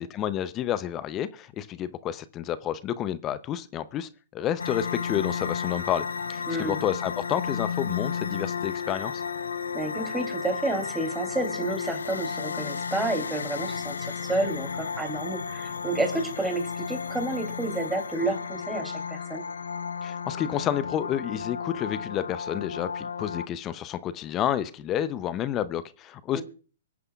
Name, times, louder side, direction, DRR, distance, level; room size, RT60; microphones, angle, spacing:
voice 1, 0.0-9.2 20.0-26.4, left 10 dB, 25° left, 15 dB, 0.6 m, -30 dB
sound 1, 4.6-23.5, left 6 dB, 85° left, 0.6 m, -33 dB
voice 2, 6.5-6.8 9.7-19.4 26.3-26.4, right 2 dB, 5° right, 5 dB, 2.8 m, -30 dB
24.0 x 9.6 x 2.4 m, 0.38 s
hypercardioid pair, 130°, 0 cm